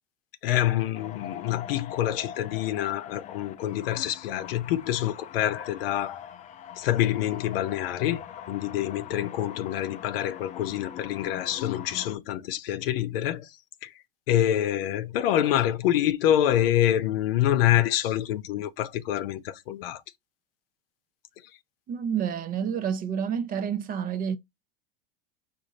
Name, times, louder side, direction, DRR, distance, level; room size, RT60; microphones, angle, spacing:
voice 1, 0.4-6.3 6.8-8.2 8.5-13.5 13.8-13.9 14.3-20.0, left 12 dB, 75° left, 0.7 m, -26 dB
sound 1, 0.9-12.2, left 10 dB, 25° left, 0.4 m, -42 dB
voice 2, 21.9-24.4, right 7 dB, 30° right, 0.5 m, -29 dB
5.0 x 2.6 x 3.9 m
supercardioid pair, 115°, 29 cm